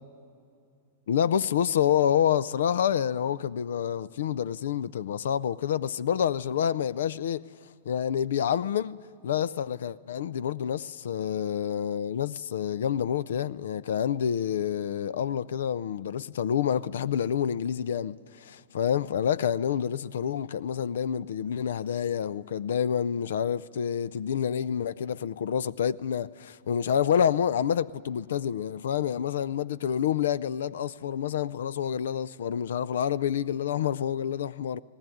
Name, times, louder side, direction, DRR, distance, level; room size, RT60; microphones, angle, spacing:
voice 1, 1.1-7.4 7.9-9.0 9.2-34.8, left 9 dB, 80° left, 0.4 m, -28 dB
19.0 x 18.5 x 9.2 m
hypercardioid pair, 125°, 0 cm